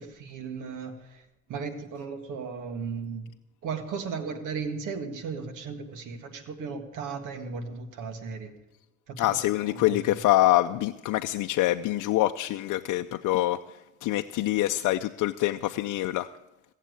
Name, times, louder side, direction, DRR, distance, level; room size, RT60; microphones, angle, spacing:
voice 1, 0.0-3.3 3.6-8.6 9.1-9.3 9.7-10.2, right 5 dB, 90° right, 8 dB, 1.7 m, -36 dB
voice 2, 9.2-13.6 14.0-16.3, left 15 dB, 85° left, 7 dB, 0.5 m, -25 dB
17.0 x 7.4 x 9.3 m, 0.96 s
cardioid pair, 90°, 30 cm